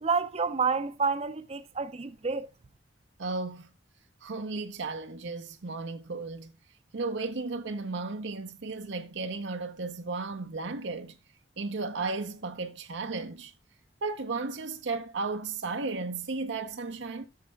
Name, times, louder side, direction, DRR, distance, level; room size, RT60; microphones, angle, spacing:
voice 1, 0.0-2.5, right 5 dB, 35° right, 0.5 m, -29 dB
voice 2, 3.2-3.7 4.2-6.5 6.9-11.2 11.6-13.5 14.0-17.3, right 3 dB, 75° right, 0.7 m, -34 dB
13.5 x 6.6 x 2.3 m
head